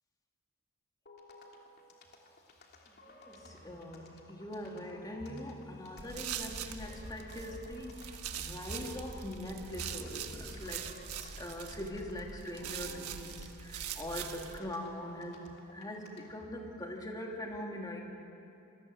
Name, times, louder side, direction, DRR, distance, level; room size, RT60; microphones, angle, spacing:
sound 1, 1.1-16.4, left 2 dB, 45° left, 2.9 m, -57 dB
voice 1, 3.0-18.0, left 1 dB, 15° left, 0 dB, 2.8 m, -42 dB
sound 2, 5.3-8.8, left 1 dB, 10° right, 1.6 m, -57 dB
sound 3, 6.0-14.6, right 8 dB, 80° right, 1.3 m, -43 dB
27.0 x 20.5 x 8.0 m, 2.7 s
head